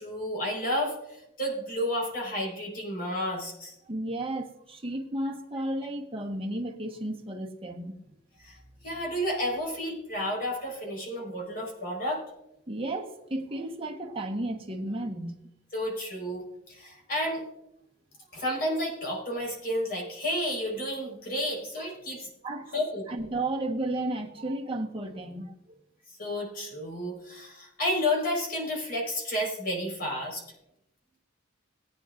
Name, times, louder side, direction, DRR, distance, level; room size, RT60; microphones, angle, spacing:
voice 1, 0.0-3.7 8.4-12.2 15.7-17.4 18.3-22.3 22.7-23.3 26.2-30.4, left 1 dB, 50° left, 0 dB, 4.7 m, -31 dB
voice 2, 3.9-7.9 11.0-11.1 12.7-15.4 22.4-22.7 23.1-25.5, right 1 dB, 25° right, 1 dB, 1.3 m, -33 dB
21.0 x 9.5 x 2.6 m, 0.85 s
head